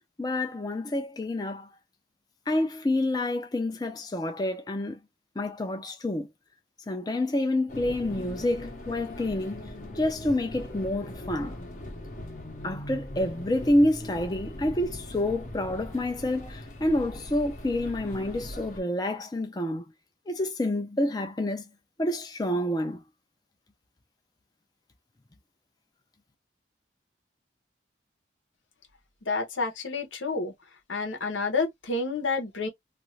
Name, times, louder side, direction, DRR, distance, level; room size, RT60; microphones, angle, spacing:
voice 1, 0.2-1.7 2.5-5.0 5.4-6.3 6.9-11.6 12.6-19.8 20.3-21.6 22.0-23.0, left 1 dB, 20° left, 0.5 m, -28 dB
sound 1, 7.7-18.8, left 1 dB, 45° left, 0.8 m, -40 dB
voice 2, 29.3-30.5 30.9-32.7, left 3 dB, 85° left, 0.9 m, -29 dB
2.5 x 2.5 x 3.1 m
head